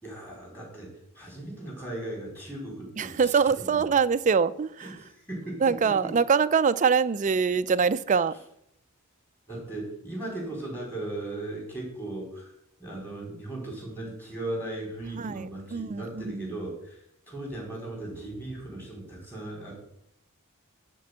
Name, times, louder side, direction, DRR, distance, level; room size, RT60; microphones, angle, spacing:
voice 1, 0.0-3.8 4.8-6.1 9.5-12.5 12.8-17.0 17.3-19.7, right 2 dB, 10° left, 4.4 m, -37 dB
voice 2, 3.0-5.0 5.6-8.4 15.1-16.6, right 6 dB, 35° right, 0.4 m, -24 dB
12.0 x 4.5 x 8.0 m
head